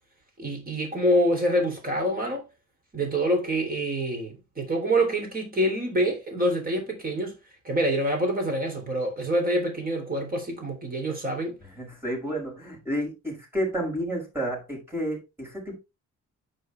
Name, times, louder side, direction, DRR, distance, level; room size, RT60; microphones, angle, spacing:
voice 1, 0.4-2.4 2.9-7.3 7.6-11.6, right 1 dB, 30° right, 3.7 m, -26 dB
voice 2, 11.8-15.8, equal, 10° right, 5.6 m, -31 dB
10.0 x 5.5 x 3.5 m
wide cardioid pair, 165°, 30 cm